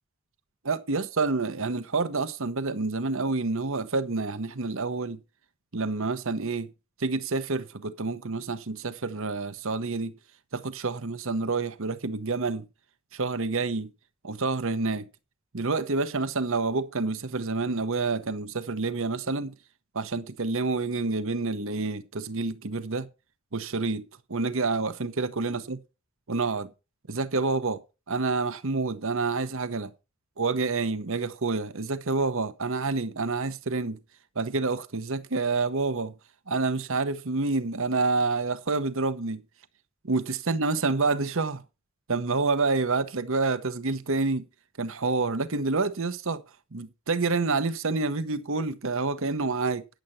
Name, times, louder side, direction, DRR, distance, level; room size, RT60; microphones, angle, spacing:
voice 1, 0.6-5.2 5.7-6.7 7.0-10.1 10.5-12.6 13.1-13.9 14.2-15.1 15.5-19.5 19.9-23.1 23.5-24.0 24.3-25.8 26.3-26.7 27.1-27.8 28.1-29.9 30.4-34.0 34.4-36.1 36.5-39.4 40.0-41.6 42.1-44.5 44.8-46.4 46.7-49.8, right 3 dB, 70° right, 1.0 m, -28 dB
10.5 x 7.8 x 5.6 m
head